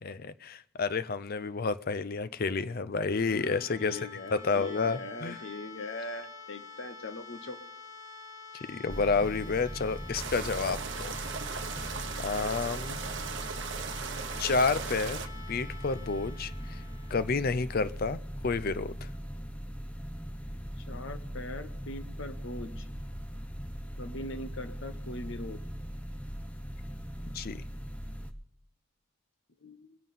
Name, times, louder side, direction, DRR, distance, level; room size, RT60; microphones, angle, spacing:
voice 1, 0.0-4.0 4.3-5.4 8.7-11.2 12.2-13.0 14.4-16.8 17.1-19.1 27.3-27.6, left 4 dB, 45° left, 15 dB, 0.5 m, -30 dB
sound 1, 2.8-18.6, left 4 dB, 15° right, 1.3 m, -48 dB
voice 2, 3.2-7.6 20.8-22.9 24.0-25.6 29.6-30.0, left 2 dB, 60° left, 9 dB, 1.0 m, -41 dB
sound 2, 8.9-28.3, equal, 5° left, 0.7 m, -40 dB
sound 3, 10.1-15.3, right 6 dB, 55° right, 0.8 m, -38 dB
22.5 x 7.5 x 5.5 m, 0.70 s
head